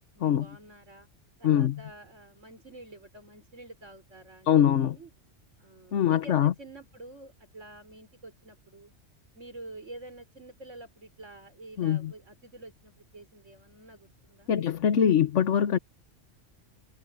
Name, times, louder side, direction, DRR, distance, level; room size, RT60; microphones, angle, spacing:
voice 1, 0.2-1.1 1.4-5.1 5.6-8.9 9.3-15.1, right 2 dB, 90° right, 5.5 m, -48 dB
voice 2, 1.4-1.8 4.5-5.0 5.9-6.5 11.8-12.1 14.5-15.8, left 9 dB, 80° left, 1.2 m, -23 dB
omnidirectional pair, 1.2 m